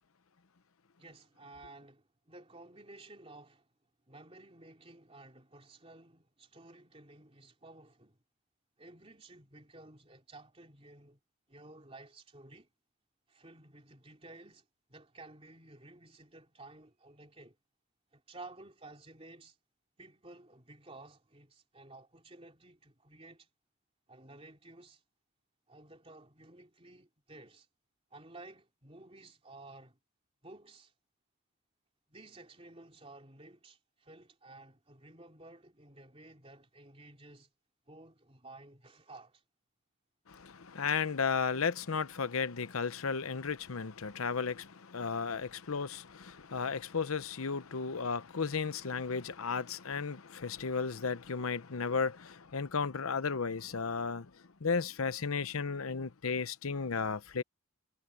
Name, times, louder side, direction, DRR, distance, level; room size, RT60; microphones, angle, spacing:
voice 1, 1.0-3.7 4.1-8.2 8.8-11.2 11.5-12.7 13.3-17.6 18.1-19.6 20.0-23.5 24.1-25.0 25.7-27.7 28.1-30.0 30.4-30.9 32.1-37.5 37.9-39.4, right 2 dB, 25° right, 2.9 m, -54 dB
voice 2, 40.3-54.3 54.6-57.4, left 5 dB, 75° left, 0.8 m, -34 dB
head